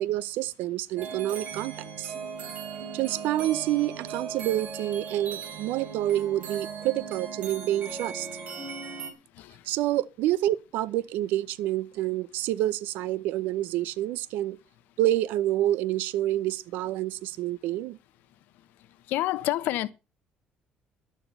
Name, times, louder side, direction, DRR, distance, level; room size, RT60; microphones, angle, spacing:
voice 1, 0.0-2.1 2.9-8.3 9.6-14.6 15.0-18.0, right 14 dB, 90° right, 0.7 m, -28 dB
sound 1, 1.0-9.1, right 6 dB, 45° right, 3.6 m, -38 dB
voice 2, 19.1-19.9, left 15 dB, 80° left, 1.1 m, -28 dB
12.0 x 9.1 x 5.5 m
cardioid pair, 160°, 3 cm